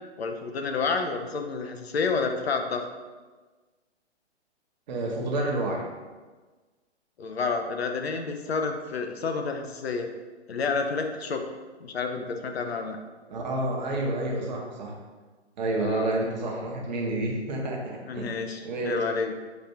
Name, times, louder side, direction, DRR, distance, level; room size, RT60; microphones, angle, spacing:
voice 1, 0.2-2.9 7.2-10.1 10.5-11.4 11.8-13.0 15.8-16.2 18.1-19.3, left 4 dB, 60° left, 5 dB, 0.6 m, -29 dB
voice 2, 4.9-5.9 13.3-14.9 15.6-18.3 18.6-19.0, right 2 dB, 40° right, -1 dB, 0.9 m, -29 dB
4.1 x 2.7 x 4.5 m, 1.3 s
figure-of-eight pair, 130°, 35 cm